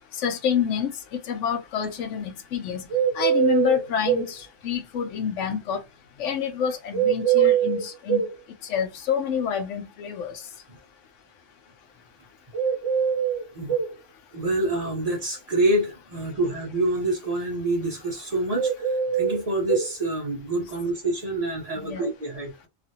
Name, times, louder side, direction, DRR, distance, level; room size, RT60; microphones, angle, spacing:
voice 1, 0.2-0.9 1.3-2.8 3.1-5.8 6.2-8.2 8.7-10.3 21.8-22.0, left 7 dB, 70° left, 0.9 m, -27 dB
sound 1, 2.9-4.3 6.9-8.3 12.5-13.9 18.5-19.9, right 9 dB, 70° right, 1.0 m, -23 dB
voice 2, 14.3-22.7, right 2 dB, 35° right, 0.7 m, -27 dB
2.9 x 2.4 x 2.7 m
omnidirectional pair, 1.3 m